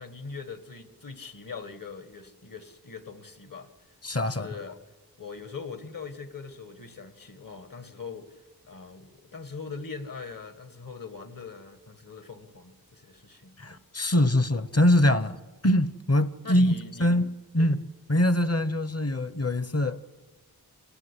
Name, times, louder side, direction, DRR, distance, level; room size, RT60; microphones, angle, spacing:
voice 1, 0.0-3.7 4.2-4.8 5.2-8.3 8.6-13.8 16.4-17.1 17.6-17.7, left 4 dB, 55° left, 1.9 m, -41 dB
voice 2, 4.0-4.5 13.6-16.7 17.0-17.8 18.1-20.0, left 1 dB, 40° left, 1.0 m, -23 dB
27.5 x 15.5 x 10.0 m
wide cardioid pair, 65°, 38 cm